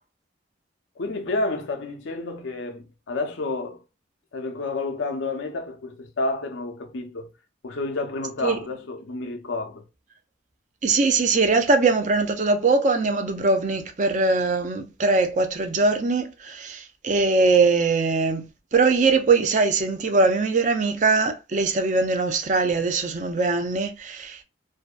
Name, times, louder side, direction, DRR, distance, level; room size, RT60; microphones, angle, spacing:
voice 1, 1.0-3.8 4.3-7.3 7.6-9.8, left 2 dB, 80° left, 0.6 m, -30 dB
voice 2, 10.8-18.4 18.7-24.4, right 3 dB, 40° right, 0.4 m, -21 dB
2.6 x 2.2 x 2.3 m
head